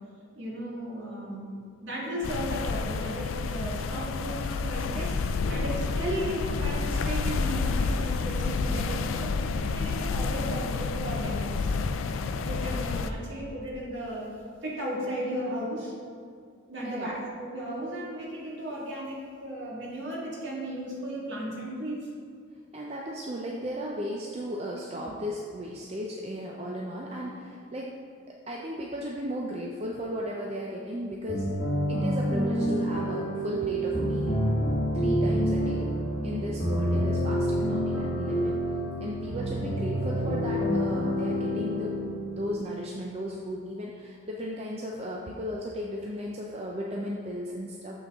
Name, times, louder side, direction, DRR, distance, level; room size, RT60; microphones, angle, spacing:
voice 1, 0.3-9.3 9.7-11.7 12.4-14.3 14.6-15.9 16.7-22.1, equal, 60° right, -5 dB, 1.8 m, -35 dB
sound 1, 2.2-13.1, left 4 dB, 80° left, 0.4 m, -29 dB
voice 2, 8.7-9.0 16.8-17.2 22.7-27.9 28.5-31.5 31.9-34.4 34.9-35.9 36.2-38.6 39.0-48.0, equal, 30° right, -2 dB, 0.5 m, -35 dB
sound 2, 31.3-43.0, equal, 50° left, 1.6 m, -28 dB
7.0 x 6.0 x 3.6 m, 2.2 s
head